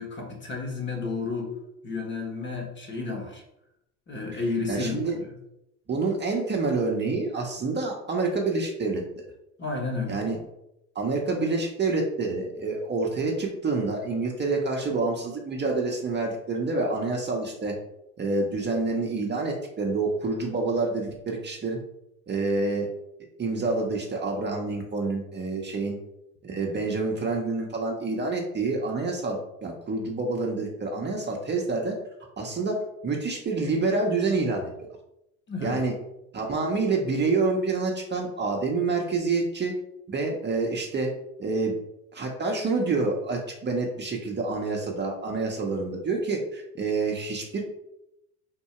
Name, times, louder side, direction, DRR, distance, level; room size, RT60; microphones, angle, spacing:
voice 1, 0.0-1.5 1.8-3.4 4.1-5.3 9.6-10.2 35.5-35.8, left 3 dB, 25° left, 1 dB, 1.2 m, -31 dB
voice 2, 4.7-5.2 5.9-9.0 10.1-10.4 10.9-17.7 18.2-21.8 22.3-22.9 23.4-26.0 26.4-32.0 32.4-34.7 35.6-35.9 36.3-39.7 40.1-41.1 41.4-41.7 42.1-47.6, right 3 dB, 25° right, 0 dB, 0.8 m, -27 dB
3.7 x 2.7 x 4.3 m, 0.83 s
supercardioid pair, 85°, 42 cm